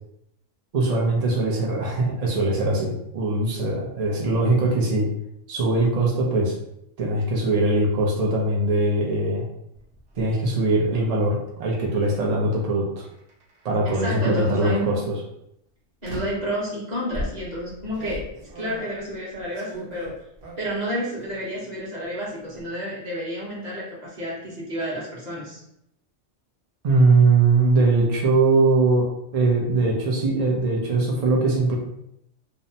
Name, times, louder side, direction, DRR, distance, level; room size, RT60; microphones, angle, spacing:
voice 1, 0.7-5.1 5.5-6.6 7.0-9.5 10.2-13.1 13.6-15.1 26.8-29.1 29.3-31.8, right 2 dB, 90° right, -2 dB, 0.3 m, -21 dB
sound 1, 9.7-10.3 12.0-12.3 13.0-13.9 14.6-14.9 16.0-16.5 17.1-20.9 21.2-21.8 22.0-22.6, equal, 70° right, 1.0 m, -38 dB
voice 2, 13.8-14.9 16.0-18.3 18.5-20.1 20.6-25.6, equal, 35° right, -6 dB, 0.9 m, -30 dB
2.8 x 2.1 x 2.6 m, 0.77 s
omnidirectional pair, 1.4 m